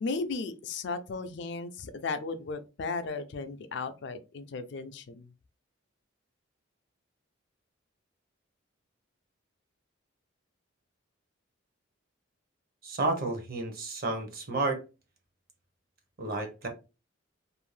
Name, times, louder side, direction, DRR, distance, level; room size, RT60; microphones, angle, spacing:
voice 1, 0.0-5.3, left 4 dB, 55° left, 0.4 m, -35 dB
voice 2, 12.8-14.8 16.2-16.7, right 2 dB, 45° right, 0.7 m, -31 dB
2.6 x 2.0 x 3.2 m
head